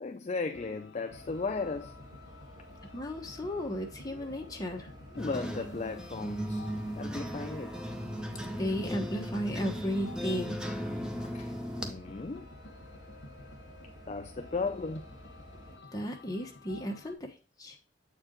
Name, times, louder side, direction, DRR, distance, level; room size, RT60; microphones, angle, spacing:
voice 1, 0.0-2.0 5.2-6.7 7.0-7.7 11.2-12.5 14.1-15.1, left 4 dB, 35° left, 0.4 m, -36 dB
sound 1, 0.5-17.1, left 3 dB, 70° left, 1.2 m, -53 dB
sound 2, 1.1-15.8, equal, 20° right, 1.9 m, -51 dB
voice 2, 2.9-4.9 8.6-10.6 15.9-17.8, equal, 20° left, 1.2 m, -35 dB
sound 3, 5.2-11.9, equal, 5° right, 0.6 m, -37 dB
7.7 x 4.6 x 3.8 m
head